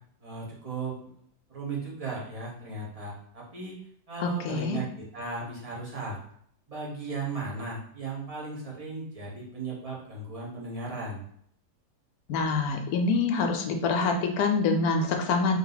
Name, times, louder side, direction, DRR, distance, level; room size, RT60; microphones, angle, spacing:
voice 1, 0.2-1.1 1.5-3.7 4.1-6.2 6.7-11.2, right 3 dB, 25° right, -5 dB, 0.9 m, -36 dB
voice 2, 4.2-4.8 12.3-15.6, left 4 dB, 70° left, 4 dB, 1.0 m, -26 dB
3.4 x 2.7 x 3.9 m, 0.66 s
omnidirectional pair, 1.8 m